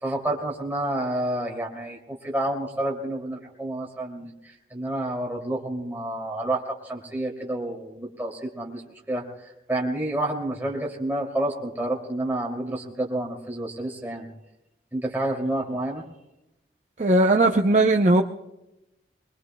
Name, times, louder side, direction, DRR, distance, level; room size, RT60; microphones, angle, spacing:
voice 1, 0.0-8.8 9.1-14.3 14.9-16.0, right 1 dB, 10° right, -2 dB, 2.6 m, -29 dB
voice 2, 17.0-18.2, right 2 dB, 40° right, 2 dB, 0.6 m, -18 dB
24.0 x 22.0 x 2.2 m, 0.91 s
head